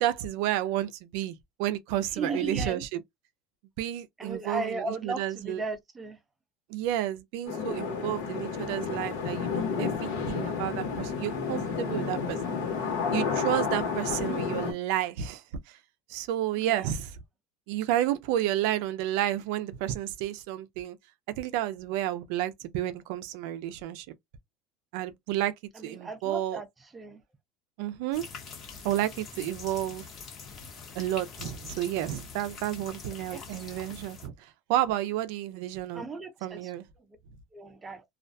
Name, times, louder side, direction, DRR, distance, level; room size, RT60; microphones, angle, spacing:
voice 1, 0.0-3.0 3.8-5.6 6.7-12.4 13.1-15.8 16.1-17.2 17.7-21.0 21.4-24.1 24.9-25.5 25.8-26.6 27.8-28.3 28.8-30.1 30.9-36.1 36.4-36.8, right 12 dB, 75° right, 0.5 m, -31 dB
voice 2, 2.2-2.8 4.2-6.2 16.7-16.9 25.9-26.7 26.9-27.2 33.3-33.4 35.9-36.7 37.5-38.0, right 3 dB, 20° right, 0.6 m, -35 dB
sound 1, 7.5-14.7, left 5 dB, 80° left, 1.0 m, -31 dB
sound 2, 28.1-34.3, left 5 dB, 40° left, 1.0 m, -44 dB
2.4 x 2.2 x 2.6 m
supercardioid pair, 120°, 0 cm